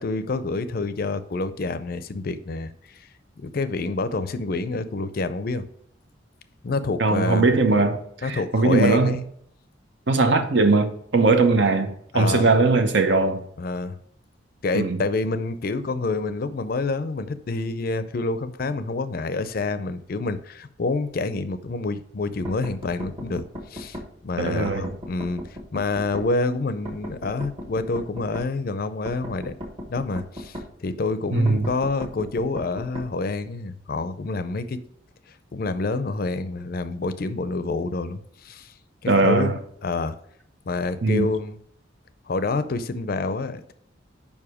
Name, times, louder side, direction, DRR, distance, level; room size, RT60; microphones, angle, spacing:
voice 1, 0.0-3.0 3.4-5.7 6.6-7.4 8.2-9.2 12.1-12.5 13.6-14.0 14.6-24.0 24.2-29.5 29.9-34.8 35.5-38.7 39.0-40.2 40.7-41.6 42.3-43.7, left 3 dB, 50° left, 0.4 m, -28 dB
voice 2, 7.0-9.2 10.1-13.4 14.7-15.0 24.4-24.9 31.3-31.7 39.1-39.6 41.0-41.3, right 3 dB, 65° right, 0.7 m, -20 dB
sound 1, 22.5-24.1 24.7-26.3 26.9-28.5 29.1-30.7 31.5-33.1, equal, 30° right, 1.3 m, -36 dB
5.4 x 4.9 x 4.9 m
head